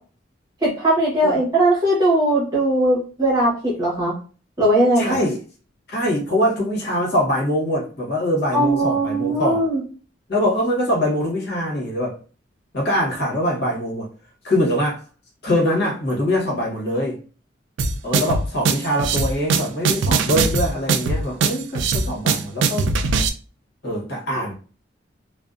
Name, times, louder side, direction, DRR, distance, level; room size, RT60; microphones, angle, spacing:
voice 1, 0.6-4.2 4.6-5.3 8.5-9.8, right 1 dB, 20° right, 0.9 m, -19 dB
voice 2, 5.0-5.4 5.9-9.6 10.3-12.2 12.7-14.1 14.4-15.0 15.4-17.2 18.0-22.9 23.8-24.5, equal, 60° left, 1.0 m, -23 dB
sound 1, 17.8-23.3, right 4 dB, 75° right, 0.3 m, -21 dB
2.6 x 2.1 x 2.3 m
head